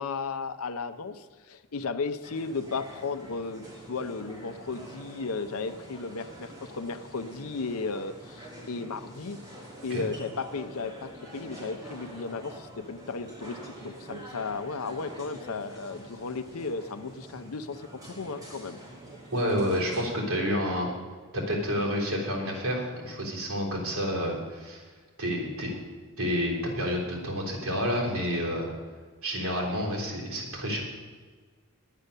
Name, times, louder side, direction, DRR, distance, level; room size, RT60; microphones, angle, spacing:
voice 1, 0.0-9.4 9.8-18.8, left 4 dB, 75° left, 10 dB, 0.7 m, -35 dB
sound 1, 2.2-20.1, right 1 dB, 15° right, 1.8 m, -46 dB
voice 2, 19.3-20.9 21.3-24.8 25.2-25.7 26.2-28.7 29.2-30.8, equal, 70° right, -2 dB, 3.7 m, -29 dB
9.9 x 9.2 x 6.6 m, 1.5 s
head